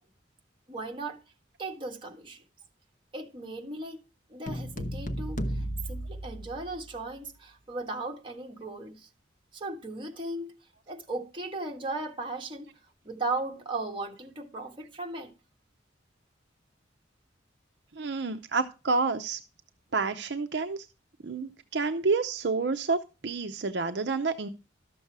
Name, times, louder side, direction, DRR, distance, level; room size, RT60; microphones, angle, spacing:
voice 1, 0.7-1.2 1.6-2.4 3.1-4.0 4.3-9.1 9.5-10.5 10.9-12.7 13.0-15.3, right 2 dB, 25° right, 1.6 m, -37 dB
sound 1, 4.5-7.0, equal, 45° left, 1.0 m, -34 dB
voice 2, 18.0-19.4 19.9-20.9 21.2-24.5, right 4 dB, 60° right, 0.6 m, -29 dB
12.5 x 7.0 x 4.7 m
head